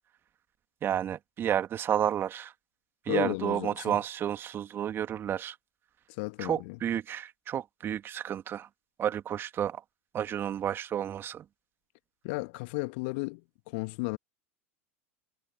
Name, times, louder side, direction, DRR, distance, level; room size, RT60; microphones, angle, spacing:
voice 1, 0.8-2.5 3.1-5.6 6.4-8.7 9.0-9.8 10.1-11.4, right 10 dB, 30° right, 2.1 m, -31 dB
voice 2, 3.1-4.0 6.1-6.8 12.2-14.2, left 28 dB, 55° left, 1.3 m, -34 dB
figure-of-eight pair, 85°, 8 cm